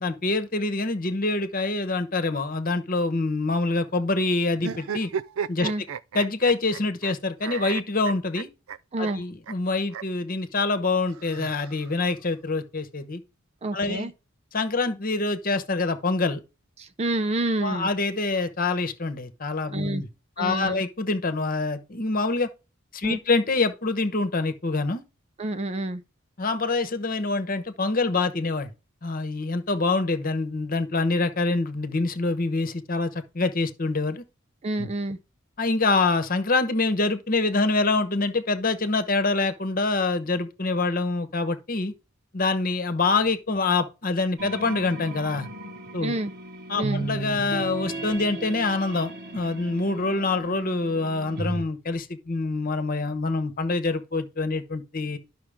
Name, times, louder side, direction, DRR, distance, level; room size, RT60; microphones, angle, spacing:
voice 1, 0.0-5.1 5.5-5.7 6.1-8.5 9.0-13.2 13.7-14.1 14.5-16.4 17.6-20.1 20.4-22.5 22.9-25.0 26.4-28.7 29.0-34.2 34.8-34.9 35.6-41.9 42.3-45.5 45.9-46.2 46.7-55.2, left 3 dB, 45° left, 1.0 m, -25 dB
sound 1, 4.6-7.1 7.4-8.8 9.0-9.1 9.5-9.6 9.9-10.0 11.1-12.1, right 7 dB, 80° right, 0.5 m, -34 dB
voice 2, 8.9-9.2 13.6-14.1 16.8-17.9 19.7-20.0 20.4-20.8 23.0-23.2 25.4-26.0 34.6-35.2 46.0-46.3 46.8-47.0, right 2 dB, 30° right, 0.5 m, -28 dB
sound 2, 44.4-51.6, right 2 dB, 55° right, 1.4 m, -35 dB
11.5 x 5.9 x 3.5 m
head